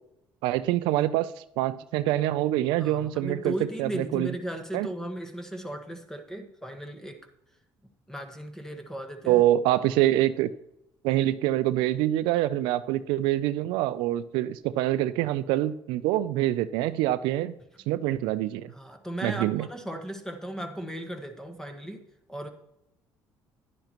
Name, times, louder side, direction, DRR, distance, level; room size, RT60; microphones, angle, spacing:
voice 1, 0.4-3.5 3.8-4.3 4.7-4.9 9.3-10.5 11.0-17.5 17.9-18.7 19.2-19.7, right 14 dB, 85° right, 14 dB, 0.4 m, -25 dB
voice 2, 2.8-7.2 8.1-9.4 18.7-22.0 22.3-22.5, right 1 dB, 5° left, 6 dB, 1.5 m, -36 dB
11.0 x 10.5 x 3.0 m, 0.82 s
cardioid pair, 90°, 8 cm